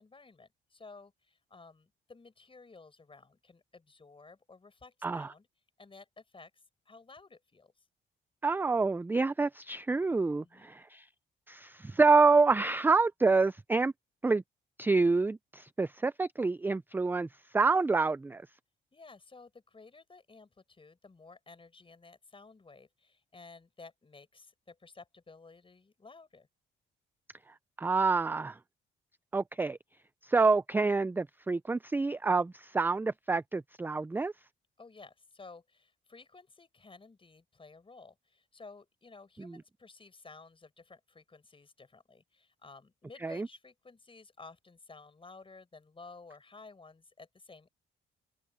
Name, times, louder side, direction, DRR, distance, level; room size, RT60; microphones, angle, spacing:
voice 1, 0.0-5.5 5.8-7.7 10.4-10.8 18.9-26.5 34.8-47.7, left 3 dB, 25° left, 5.8 m, -54 dB
voice 2, 8.4-11.0 11.5-13.9 14.2-14.4 14.8-17.3 17.5-18.4 27.8-28.5 29.3-29.8 30.3-34.3 43.2-43.5, right 4 dB, 10° right, 0.3 m, -27 dB
cardioid pair, 90°, 20 cm